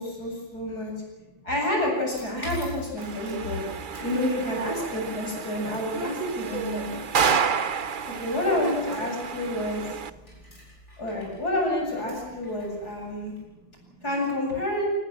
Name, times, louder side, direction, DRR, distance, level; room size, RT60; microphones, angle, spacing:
voice 1, 0.0-0.9 1.4-3.6 4.0-7.0 8.1-10.0 11.0-13.3 14.0-14.8, left 1 dB, 50° left, 0 dB, 8.6 m, -29 dB
voice 2, 0.5-1.5 3.3-5.1 5.9-7.7 8.3-9.0 10.1-10.6 12.3-12.7 13.0-14.1, right 3 dB, 85° right, 6 dB, 4.8 m, -39 dB
sound 1, 2.1-13.4, left 1 dB, 35° left, 7.9 m, -49 dB
sound 2, 3.0-10.1, right 6 dB, 55° right, 0.5 m, -30 dB
24.5 x 20.0 x 7.6 m, 1.1 s
omnidirectional pair, 2.1 m